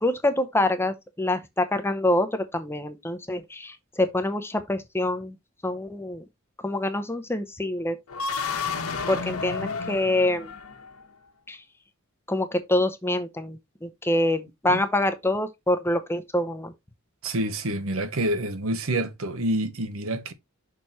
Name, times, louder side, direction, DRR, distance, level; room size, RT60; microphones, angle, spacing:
voice 1, 0.0-5.3 5.6-6.2 6.6-8.0 9.1-10.5 11.5-11.6 12.3-16.7, left 1 dB, 10° left, 0.7 m, -26 dB
sound 1, 8.1-11.1, left 5 dB, 85° left, 1.4 m, -31 dB
voice 2, 17.2-20.3, right 1 dB, 70° right, 1.0 m, -27 dB
6.5 x 4.1 x 4.3 m
head